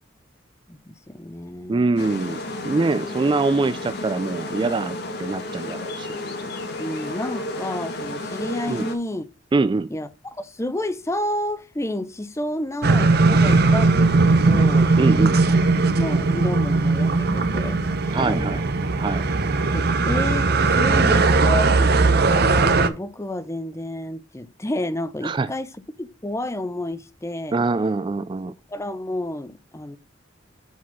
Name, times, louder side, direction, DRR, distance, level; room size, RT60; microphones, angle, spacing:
voice 1, 0.7-2.0 6.8-9.3 9.9-14.9 16.0-18.6 19.7-25.7 26.0-27.6 28.7-30.0, left 1 dB, 15° left, 0.6 m, -30 dB
voice 2, 1.7-6.1 8.7-8.9 9.5-9.9 15.0-15.4 18.1-18.6 19.0-19.2 25.2-25.5 27.5-28.5, right 3 dB, 25° right, 0.3 m, -24 dB
sound 1, 2.0-9.0, left 2 dB, 60° left, 1.8 m, -32 dB
sound 2, 12.8-22.9, right 3 dB, 55° right, 0.8 m, -18 dB
7.2 x 4.2 x 5.9 m
head